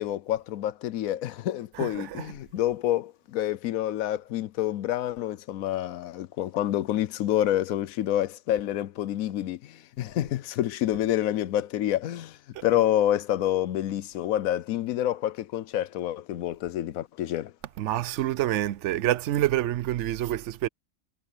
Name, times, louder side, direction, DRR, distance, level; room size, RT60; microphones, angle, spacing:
voice 1, 0.0-17.5, left 12 dB, 75° left, 1.0 m, -28 dB
voice 2, 1.7-2.3 17.8-20.7, right 13 dB, 65° right, 0.8 m, -27 dB
omnidirectional pair, 1.5 m